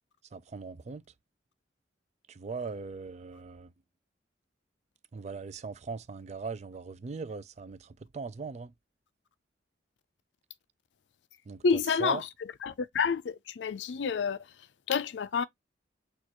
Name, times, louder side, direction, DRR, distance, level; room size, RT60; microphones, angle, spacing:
voice 1, 0.3-1.0 2.3-3.7 5.1-8.7 11.5-12.2, right 4 dB, 35° right, 0.4 m, -39 dB
voice 2, 11.6-12.2 12.6-14.4 14.9-15.4, left 5 dB, 70° left, 0.4 m, -28 dB
6.3 x 2.4 x 2.9 m
head